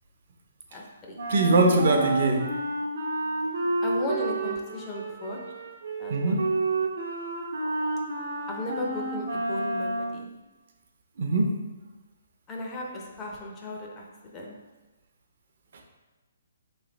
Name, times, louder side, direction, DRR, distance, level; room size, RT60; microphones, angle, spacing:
voice 1, 0.7-1.2 3.8-5.4 6.0-6.4 8.5-10.3 12.5-14.0 14.3-14.6, left 2 dB, 20° left, -1 dB, 0.5 m, -35 dB
Wind instrument woodwind instrument, 1.2-10.2, right 2 dB, 80° right, 0.8 m, -30 dB
voice 2, 1.3-2.5 6.1-6.4 11.2-11.5, right 2 dB, 55° right, 2 dB, 0.6 m, -21 dB
3.2 x 2.6 x 3.9 m, 1.2 s
hypercardioid pair, 160°, 0 cm